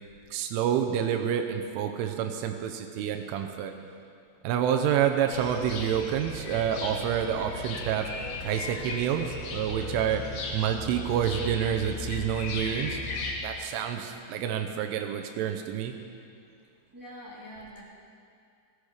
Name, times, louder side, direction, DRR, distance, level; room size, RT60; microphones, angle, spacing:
voice 1, 0.3-3.7 4.4-8.1 8.4-10.2 10.5-13.0 13.4-16.0, right 9 dB, 85° right, 5 dB, 3.3 m, -28 dB
sound 1, 5.3-13.3, left 3 dB, 80° left, 4.1 m, -36 dB
voice 2, 16.9-17.8, equal, 5° right, -8 dB, 2.6 m, -44 dB
17.0 x 15.0 x 5.0 m, 2.4 s
omnidirectional pair, 5.4 m